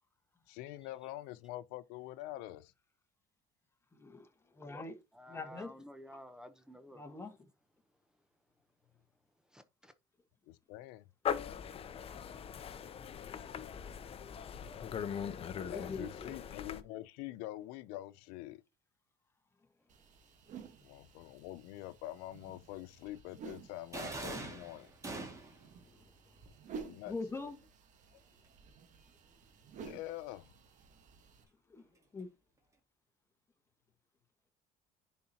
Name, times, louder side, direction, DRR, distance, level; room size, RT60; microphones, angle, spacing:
voice 1, 0.5-2.7 10.5-11.0 15.7-18.6 20.8-24.9 26.8-27.1 29.8-30.5, left 15 dB, 85° left, 0.5 m, -45 dB
voice 2, 3.9-5.0 5.3-6.2 6.9-7.5 15.5-16.4 20.5-20.7 25.8-26.1 27.1-27.7 31.7-32.3, left 3 dB, 15° left, 1.4 m, -45 dB
voice 3, 5.2-7.0 9.5-9.9, equal, 5° right, 0.7 m, -52 dB
sound 1, 11.2-16.8, left 8 dB, 40° left, 0.7 m, -40 dB
sound 2, 19.9-31.4, right 6 dB, 55° right, 1.3 m, -53 dB
sound 3, 23.9-25.7, right 2 dB, 20° right, 2.0 m, -42 dB
10.0 x 4.2 x 2.8 m
cardioid pair, 105°, 15 cm